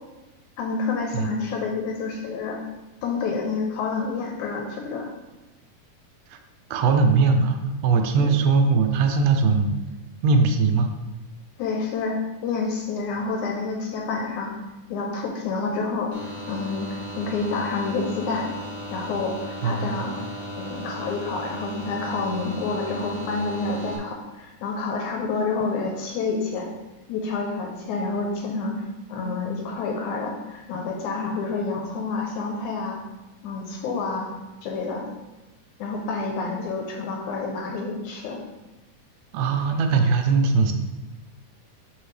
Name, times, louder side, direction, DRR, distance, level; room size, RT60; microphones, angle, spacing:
voice 1, 0.6-2.6 3.0-5.1 8.2-8.3 11.6-14.6 14.9-18.5 18.9-20.2 20.6-26.7 27.1-28.8 29.1-33.0 33.4-34.3 34.6-35.1 35.8-38.4, left 4 dB, 75° left, 1 dB, 2.0 m, -28 dB
voice 2, 6.7-9.7 10.2-10.9 19.6-20.0 39.3-40.7, right 4 dB, 80° right, 5 dB, 2.1 m, -20 dB
sound 1, 16.1-24.0, equal, 55° left, 1.2 m, -36 dB
6.2 x 5.0 x 3.2 m, 1.1 s
omnidirectional pair, 3.8 m